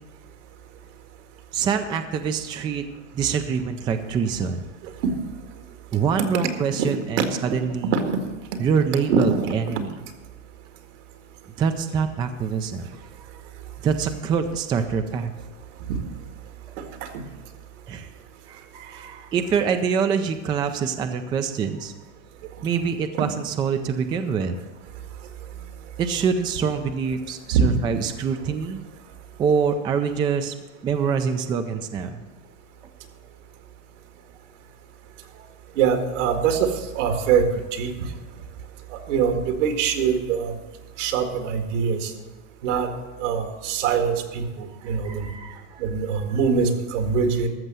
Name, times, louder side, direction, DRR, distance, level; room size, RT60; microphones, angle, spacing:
voice 1, 1.5-2.9 3.1-4.6 5.9-7.9 8.6-10.0 11.6-13.0 13.8-15.3 17.9-18.1 18.5-21.9 22.6-24.6 26.0-28.8 29.4-30.5 30.8-32.2 44.8-45.8, right 6 dB, 15° right, 8 dB, 0.3 m, -25 dB
voice 2, 6.4-7.6 7.9-8.2 9.1-9.7 15.9-16.0 16.8-17.2 23.1-23.3 27.5-27.8 35.8-36.7 36.9-37.4 37.7-37.9 38.9-40.5 41.0-42.1 42.6-42.9 43.2-45.3 45.8-47.5, right 6 dB, 75° right, 5 dB, 2.0 m, -23 dB
13.5 x 6.6 x 7.5 m, 1.2 s
supercardioid pair, 150°, 37 cm